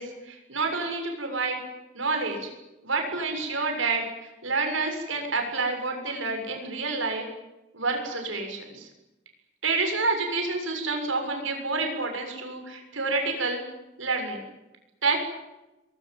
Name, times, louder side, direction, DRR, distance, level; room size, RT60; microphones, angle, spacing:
voice 1, 0.0-1.6 1.9-2.5 2.8-4.0 4.4-7.2 7.7-8.9 9.6-13.6 14.0-14.4 15.0-15.2, right 3 dB, 85° right, 4 dB, 7.1 m, -28 dB
23.0 x 22.5 x 9.1 m, 1.0 s
head